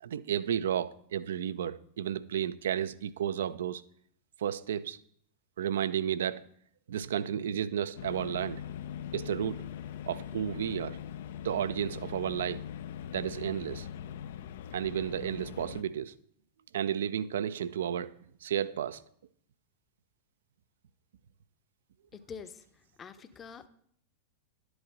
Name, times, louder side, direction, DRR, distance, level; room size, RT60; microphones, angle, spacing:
voice 1, 0.0-3.8 4.4-5.0 5.6-6.4 6.9-8.6 9.1-9.6 10.1-11.0 11.4-12.6 13.1-13.9 14.7-16.1 16.7-18.1 18.4-19.0, right 9 dB, 60° right, 0.4 m, -32 dB
sound 1, 8.0-15.8, left 9 dB, 55° left, 0.4 m, -41 dB
voice 2, 22.1-22.6 23.0-23.7, left 6 dB, 25° left, 0.7 m, -45 dB
11.5 x 7.9 x 3.9 m
figure-of-eight pair, 90°, 0 cm